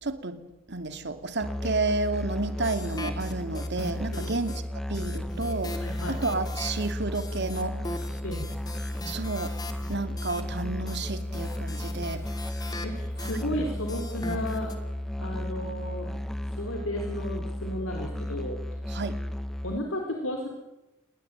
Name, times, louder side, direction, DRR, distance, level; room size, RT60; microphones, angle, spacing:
voice 1, 0.0-0.4 0.7-4.6 4.9-5.8 6.1-7.8 9.1-9.5 9.9-12.2 18.9-19.1, right 3 dB, 60° right, 8 dB, 2.7 m, -31 dB
Musical instrument, 1.4-19.8, equal, ahead, 1.2 m, -34 dB
sound 1, 2.6-4.6 4.9-14.7, left 2 dB, 20° left, 2.8 m, -41 dB
voice 2, 5.8-6.2 8.2-8.5 10.0-10.1 12.8-14.7 15.2-16.1 16.6-18.6 19.6-20.5, left 1 dB, 90° left, 2 dB, 4.4 m, -33 dB
28.0 x 21.5 x 9.2 m, 0.96 s
head